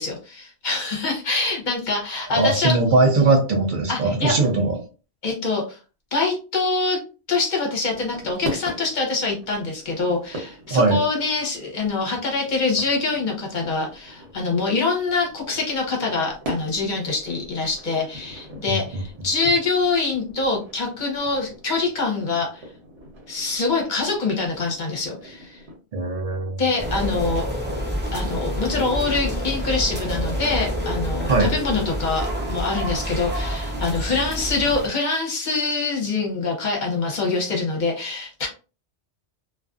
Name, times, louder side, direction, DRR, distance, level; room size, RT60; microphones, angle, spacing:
voice 1, 0.0-2.8 3.9-4.3 5.2-5.8 6.1-7.0 7.3-22.6 23.3-25.6 26.6-27.4 28.1-38.5, left 3 dB, 50° left, 0 dB, 0.8 m, -25 dB
voice 2, 2.3-4.8 10.7-11.0 18.7-19.0 25.9-26.6 31.3-31.5, right 3 dB, 55° right, 3 dB, 0.7 m, -20 dB
sound 1, 7.9-25.8, equal, 70° right, 1.1 m, -40 dB
sound 2, 26.8-34.9, equal, 15° right, 0.5 m, -27 dB
2.4 x 2.3 x 2.3 m, 0.34 s
omnidirectional pair, 1.1 m